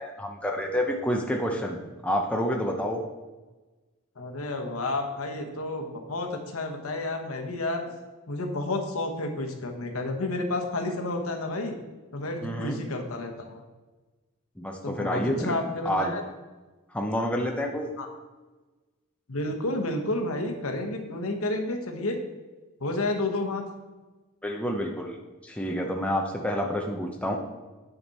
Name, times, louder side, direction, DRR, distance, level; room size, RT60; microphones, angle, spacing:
voice 1, 0.0-3.0 12.4-12.8 14.6-15.6 15.8-16.1 16.9-17.9 24.4-25.2 25.4-27.4, equal, 5° left, 0 dB, 0.6 m, -28 dB
voice 2, 4.2-7.8 8.3-11.7 12.1-13.6 14.8-16.2 18.0-18.1 19.3-22.2 22.8-23.6, left 2 dB, 65° left, 4 dB, 1.1 m, -30 dB
9.1 x 5.1 x 4.2 m, 1.2 s
head